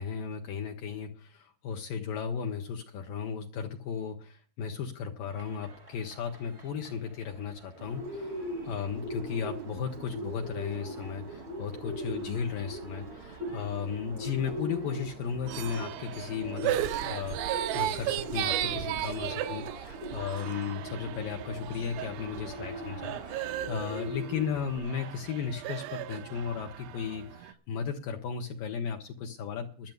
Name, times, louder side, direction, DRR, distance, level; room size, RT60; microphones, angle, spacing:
voice 1, 0.0-29.9, left 7 dB, 70° left, 2 dB, 2.4 m, -35 dB
sound 1, 5.3-23.5, right 2 dB, 40° right, 0.9 m, -54 dB
Bird, 7.8-24.8, right 1 dB, 55° right, 1.5 m, -41 dB
sound 2, 15.5-27.5, right 12 dB, 85° right, 2.9 m, -35 dB
12.0 x 6.7 x 9.1 m, 0.42 s
omnidirectional pair, 4.7 m